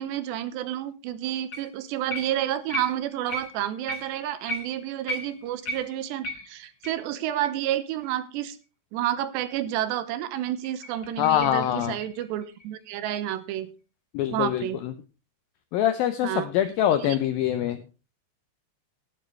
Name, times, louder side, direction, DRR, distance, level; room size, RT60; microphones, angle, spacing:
voice 1, 0.0-8.6 8.9-13.7 14.3-14.8 16.2-16.5 17.0-17.2, right 12 dB, 80° right, 12 dB, 3.0 m, -30 dB
sound 1, 1.5-1.8 2.1-7.0 7.4-7.5 8.0-8.1 8.6-8.7 10.4-13.2 16.0-17.6, equal, 60° left, 1.0 m, -38 dB
voice 2, 11.2-12.0 14.1-14.9 15.7-17.8, left 11 dB, 85° left, 10 dB, 2.1 m, -24 dB
18.5 x 9.2 x 3.2 m, 0.32 s
omnidirectional pair, 5.1 m